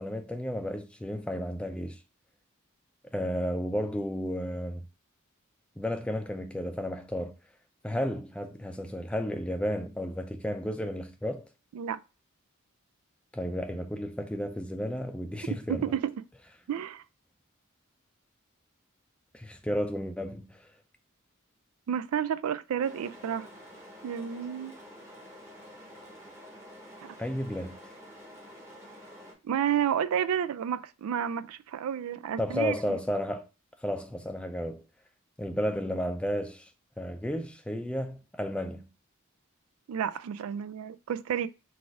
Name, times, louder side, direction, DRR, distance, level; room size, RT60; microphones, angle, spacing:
voice 1, 0.0-2.0 3.1-4.8 5.8-7.3 7.8-11.4 13.3-15.9 19.3-20.7 27.2-27.7 32.4-33.5 33.8-34.8 35.4-36.7 37.0-38.9, equal, 5° left, 0.4 m, -33 dB
voice 2, 15.7-16.1 16.7-17.0 21.9-23.5 24.0-24.8 27.0-27.2 29.4-32.7 39.9-41.5, right 9 dB, 90° right, 0.3 m, -30 dB
sound 1, 22.8-29.3, equal, 15° right, 0.9 m, -49 dB
4.0 x 2.5 x 4.6 m
head